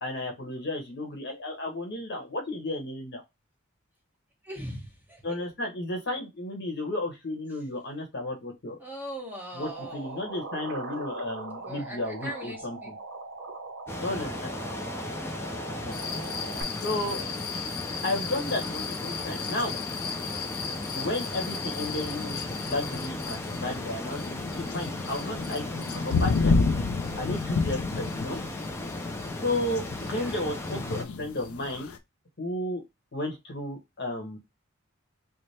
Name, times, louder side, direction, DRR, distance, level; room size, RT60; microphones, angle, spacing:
voice 1, 0.0-3.2 5.2-8.8 9.5-12.9 14.0-14.5 15.7-16.0 16.8-17.2 18.0-19.7 20.9-24.2 24.6-26.5 27.2-28.4 29.4-31.9 32.4-32.8 33.1-34.4, left 1 dB, 50° left, 3 dB, 0.9 m, -33 dB
voice 2, 4.4-5.4 8.8-10.3 11.6-12.9 16.8-17.4 19.4-19.6 30.0-30.4, equal, 10° right, -1 dB, 1.0 m, -41 dB
sound 1, 9.6-16.6, right 3 dB, 50° right, 0.7 m, -40 dB
sound 2, 13.9-31.0, left 2 dB, 10° left, 0.4 m, -36 dB
sound 3, 15.9-32.0, left 4 dB, 90° left, 0.5 m, -32 dB
3.2 x 2.1 x 4.1 m, 0.21 s
head